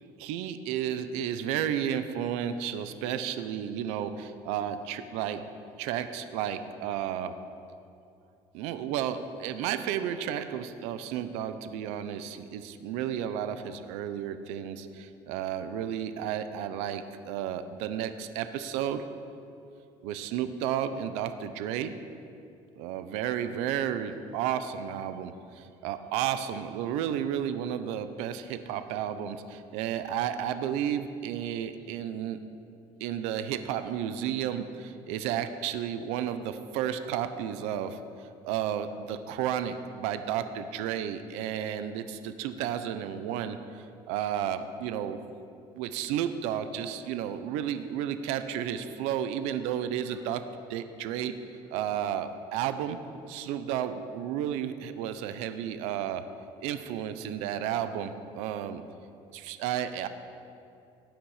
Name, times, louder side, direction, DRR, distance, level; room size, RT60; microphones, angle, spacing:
voice 1, 0.2-5.4 5.8-7.3 8.5-19.0 20.0-21.9 22.8-32.4 33.0-45.2 45.7-50.4 50.7-51.3 51.7-53.0 53.3-56.2 56.6-58.8 59.3-60.1, right 9 dB, 85° right, 10 dB, 0.8 m, -32 dB
18.0 x 9.0 x 5.0 m, 2.5 s
cardioid pair, 135°, 11 cm